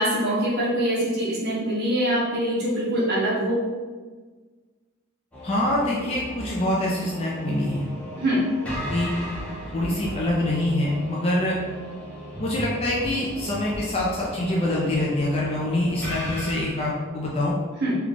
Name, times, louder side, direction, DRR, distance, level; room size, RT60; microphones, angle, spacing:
voice 1, 0.0-3.6 8.2-8.4 17.8-17.9, right 1 dB, 50° right, -6 dB, 0.9 m, -24 dB
sound 1, 5.3-16.6, equal, 5° left, 0.8 m, -36 dB
voice 2, 5.4-7.9 8.9-9.1 9.7-11.6 12.4-17.6, left 1 dB, 30° left, -4 dB, 0.4 m, -25 dB
3.3 x 2.3 x 3.8 m, 1.4 s
head